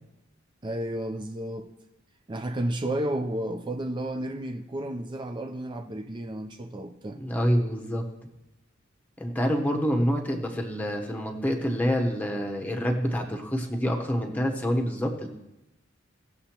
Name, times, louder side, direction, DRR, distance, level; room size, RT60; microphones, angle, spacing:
voice 1, 0.6-1.7 2.3-7.2, right 1 dB, 25° right, 0.4 m, -32 dB
voice 2, 7.2-8.0 9.2-15.3, equal, 10° left, 0.9 m, -27 dB
17.5 x 6.8 x 2.9 m
head